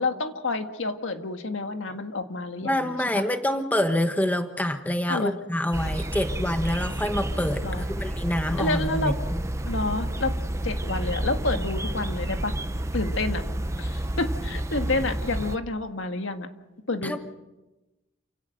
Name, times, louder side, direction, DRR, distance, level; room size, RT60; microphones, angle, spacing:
voice 1, 0.0-3.0 5.1-5.3 7.6-7.9 8.6-9.1 9.7-10.3 10.6-12.5 12.9-13.4 13.8-16.5 16.9-17.2, left 2 dB, 80° left, 6 dB, 1.8 m, -29 dB
voice 2, 2.6-7.6 8.0-9.4 17.0-17.2, left 1 dB, 10° left, 7 dB, 1.1 m, -26 dB
sound 1, 5.7-15.6, right 1 dB, 15° right, 0.8 m, -30 dB
28.5 x 17.0 x 6.5 m, 1.0 s
head